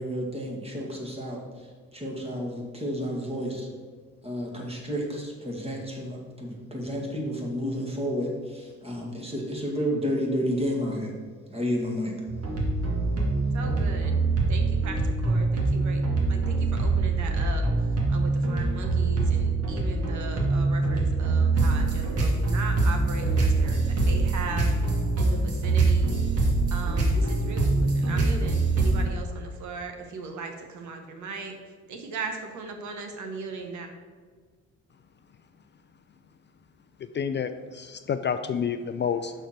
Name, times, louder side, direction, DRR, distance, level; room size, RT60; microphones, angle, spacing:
voice 1, 0.0-1.4 1.9-3.7 4.2-11.1 11.5-12.1, equal, 20° right, -1 dB, 2.1 m, -31 dB
sound 1, 12.3-29.1, right 3 dB, 50° right, 2.1 m, -24 dB
voice 2, 13.5-14.1 14.5-16.0 16.3-26.2 26.7-31.5 31.9-33.9, right 4 dB, 75° right, 4 dB, 1.2 m, -38 dB
voice 3, 37.1-39.3, left 7 dB, 40° left, 10 dB, 0.4 m, -29 dB
6.4 x 4.5 x 6.5 m, 1.5 s
cardioid pair, 90°, 30 cm